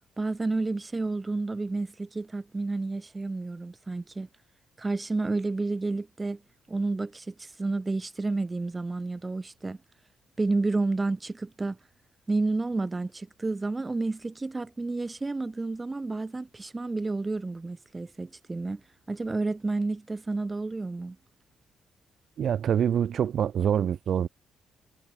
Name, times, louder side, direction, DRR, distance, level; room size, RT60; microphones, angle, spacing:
voice 1, 0.2-4.3 4.8-6.4 6.7-9.8 10.4-11.8 12.3-18.8 19.1-21.2, right 3 dB, 20° right, 4.8 m, -30 dB
voice 2, 22.4-24.3, right 9 dB, 60° right, 1.1 m, -25 dB
cardioid pair, 90°, 0 cm